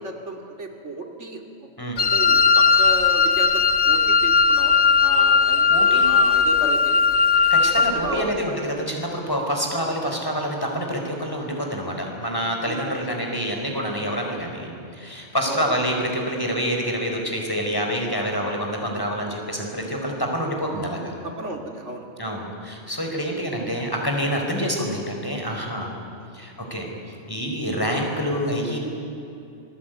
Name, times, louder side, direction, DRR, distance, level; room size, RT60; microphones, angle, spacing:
voice 1, 0.0-1.4 2.0-7.0 7.8-8.4 12.6-13.1 15.4-15.8 21.2-22.2 26.0-26.3, right 1 dB, 70° right, 3 dB, 2.7 m, -34 dB
Wind instrument woodwind instrument, 2.0-8.0, left 5 dB, 65° left, 1.6 m, -18 dB
voice 2, 5.7-6.1 7.5-21.1 22.2-25.9 26.3-26.9 27.3-28.8, equal, 15° left, 1 dB, 4.7 m, -27 dB
27.0 x 20.5 x 9.3 m, 2.7 s
omnidirectional pair, 1.3 m